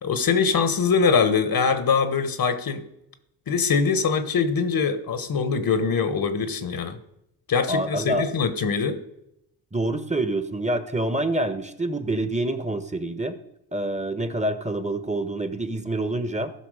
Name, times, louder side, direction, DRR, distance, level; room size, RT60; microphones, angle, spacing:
voice 1, 0.0-2.8 3.5-7.0 7.5-9.0, left 5 dB, 55° left, 10 dB, 1.3 m, -23 dB
voice 2, 7.7-8.3 9.7-13.4 13.7-16.5, right 1 dB, 15° right, 10 dB, 1.3 m, -26 dB
14.5 x 5.8 x 5.0 m, 0.83 s
supercardioid pair, 45°, 43 cm